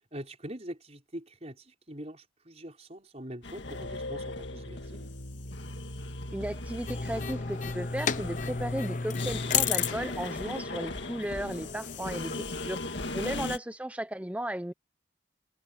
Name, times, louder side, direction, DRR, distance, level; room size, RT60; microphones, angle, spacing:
voice 1, 0.0-5.1 13.2-13.6, right 1 dB, 30° right, 5.5 m, -43 dB
sound 1, 3.4-13.6, left 3 dB, 65° left, 1.9 m, -39 dB
sound 2, 3.6-7.5, left 1 dB, 85° left, 5.0 m, -41 dB
voice 2, 6.3-14.7, right 1 dB, 5° right, 0.8 m, -35 dB
sound 3, 6.9-13.1, left 6 dB, 40° left, 0.7 m, -33 dB
head